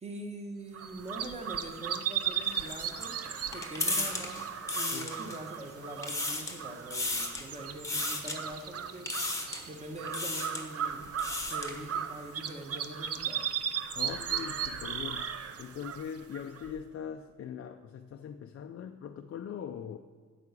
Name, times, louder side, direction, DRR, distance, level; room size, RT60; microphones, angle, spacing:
voice 1, 0.0-9.2 9.7-11.1 11.5-13.5, right 1 dB, 20° right, 4 dB, 1.1 m, -43 dB
sound 1, 0.7-16.8, right 8 dB, 45° right, 0.6 m, -37 dB
sound 2, 2.5-5.6 5.9-6.6 6.9-7.5 7.8-8.4 9.1-9.7 10.1-10.7 11.0-11.8, left 2 dB, 10° left, 0.9 m, -34 dB
voice 2, 13.9-20.0, left 8 dB, 45° left, 5 dB, 0.4 m, -41 dB
12.0 x 4.9 x 8.2 m, 1.5 s
wide cardioid pair, 175°, 34 cm